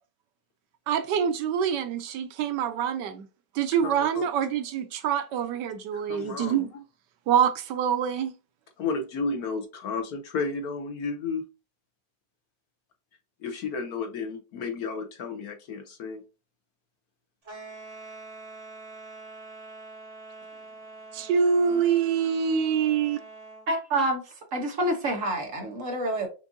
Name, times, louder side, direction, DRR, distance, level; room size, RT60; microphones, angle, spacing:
voice 1, 0.9-3.3 3.5-6.7 7.3-8.3 21.1-23.2, right 7 dB, 75° right, 1.2 m, -25 dB
voice 2, 3.8-4.3 5.9-6.8 8.8-11.5 13.4-16.2, left 4 dB, 65° left, 1.1 m, -32 dB
sound 1, 17.4-23.7, right 3 dB, 20° right, 1.5 m, -45 dB
voice 3, 23.7-24.2 24.5-26.3, right 1 dB, 50° right, 1.2 m, -27 dB
6.1 x 2.5 x 2.6 m
omnidirectional pair, 1.9 m